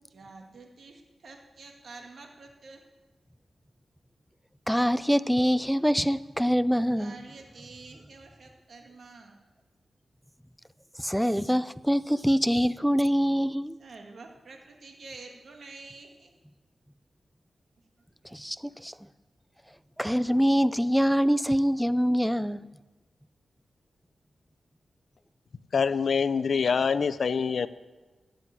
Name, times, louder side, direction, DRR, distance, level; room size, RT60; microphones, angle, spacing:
voice 1, 0.1-2.8 6.9-9.4 13.8-16.3 18.2-18.3, right 3 dB, 65° right, 1.8 m, -48 dB
voice 2, 4.7-7.2 11.0-13.8 18.3-18.9 20.0-22.6, equal, ahead, 0.4 m, -24 dB
voice 3, 25.7-27.7, left 5 dB, 70° left, 0.5 m, -25 dB
12.5 x 7.7 x 9.8 m
wide cardioid pair, 95°, 0 cm